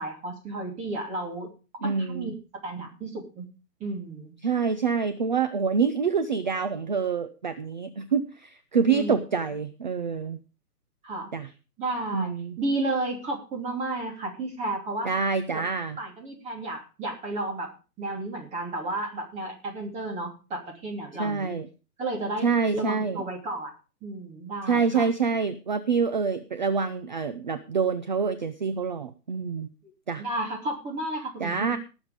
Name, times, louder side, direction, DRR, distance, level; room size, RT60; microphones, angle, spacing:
voice 1, 0.0-1.5 1.8-2.3 2.6-3.5 3.8-4.3 8.9-9.2 11.0-11.3 11.8-15.1 15.5-15.6 16.0-17.7 18.0-21.6 22.0-22.5 22.7-23.7 24.0-25.1 30.2-31.8, right 2 dB, 15° right, 1 dB, 2.9 m, -32 dB
voice 2, 1.8-2.3 4.4-10.4 11.3-11.5 12.1-12.6 15.0-16.0 21.2-21.7 22.4-23.2 24.7-29.7 30.1-30.2 31.4-31.8, right 5 dB, 30° right, 11 dB, 0.5 m, -26 dB
18.5 x 7.3 x 5.0 m, 0.33 s
hypercardioid pair, 160°, 49 cm